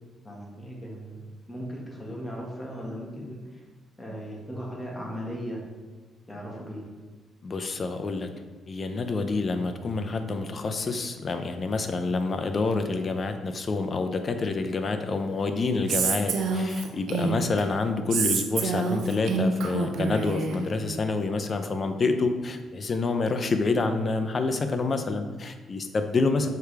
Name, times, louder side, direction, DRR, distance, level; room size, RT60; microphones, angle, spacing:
voice 1, 0.2-3.6 4.0-5.6 6.3-6.8 26.4-26.5, equal, 15° left, -3 dB, 1.9 m, -37 dB
voice 2, 7.4-8.3 8.7-26.5, left 3 dB, 40° left, 7 dB, 0.6 m, -27 dB
Female speech woman speaking, 15.9-17.6 18.1-20.6, right 4 dB, 75° right, 0.7 m, -27 dB
6.8 x 4.7 x 3.4 m, 1.3 s
cardioid pair, 90°, 0 cm